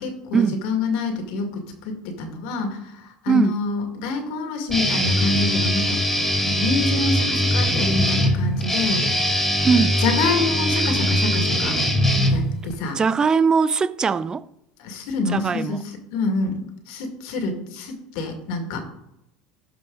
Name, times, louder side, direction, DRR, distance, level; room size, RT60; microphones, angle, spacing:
voice 1, 0.0-6.0 6.4-9.0 10.0-11.8 12.3-13.0 14.8-18.8, left 3 dB, 75° left, 2.1 m, -27 dB
voice 2, 3.3-3.6 9.6-10.0 13.0-14.4 15.3-15.8, right 5 dB, 25° right, 0.4 m, -20 dB
Guitar, 4.7-12.7, equal, 5° left, 2.2 m, -21 dB
13.0 x 4.7 x 3.9 m
supercardioid pair, 115°, 3 cm